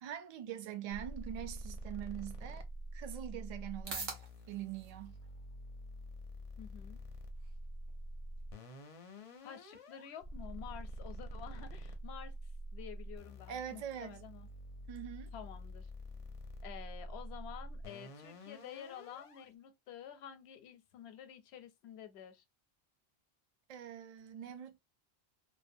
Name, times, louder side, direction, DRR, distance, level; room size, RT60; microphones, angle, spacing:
voice 1, 0.0-2.6 2.9-4.2 4.5-5.2 13.5-14.2 14.9-15.3 23.7-24.8, right 10 dB, 55° right, 0.5 m, -43 dB
sound 1, 0.9-19.5, right 1 dB, 45° left, 0.5 m, -47 dB
sound 2, 2.4-19.3, right 4 dB, 70° right, 1.0 m, -55 dB
voice 2, 6.6-7.0 9.4-14.5 15.3-15.9 16.6-22.4, left 9 dB, 90° left, 0.8 m, -50 dB
2.7 x 2.1 x 2.5 m
omnidirectional pair, 1.0 m